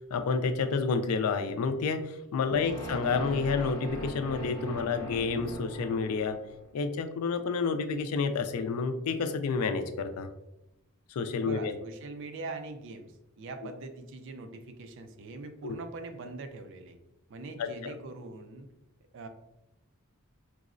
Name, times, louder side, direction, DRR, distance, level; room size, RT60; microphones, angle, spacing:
voice 1, 0.1-6.4 6.7-10.3 11.1-11.7 15.6-15.8 17.6-17.9, left 4 dB, 80° left, 8 dB, 0.3 m, -29 dB
voice 2, 2.5-2.9 11.4-17.0 17.3-18.7 19.1-19.3, right 3 dB, 55° right, 8 dB, 0.4 m, -42 dB
sound 1, 2.6-6.7, equal, 15° left, 0.8 m, -40 dB
4.5 x 2.0 x 2.4 m, 0.92 s
head